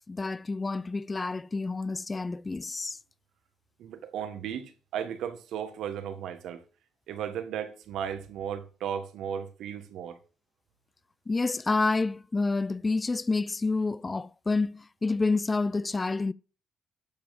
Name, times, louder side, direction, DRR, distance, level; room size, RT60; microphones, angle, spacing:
voice 1, 0.1-3.0 11.3-16.3, left 3 dB, 25° left, 0.3 m, -28 dB
voice 2, 3.8-6.6 7.1-10.2, right 8 dB, 80° right, 1.1 m, -35 dB
12.0 x 4.9 x 5.1 m
cardioid pair, 90°, 0 cm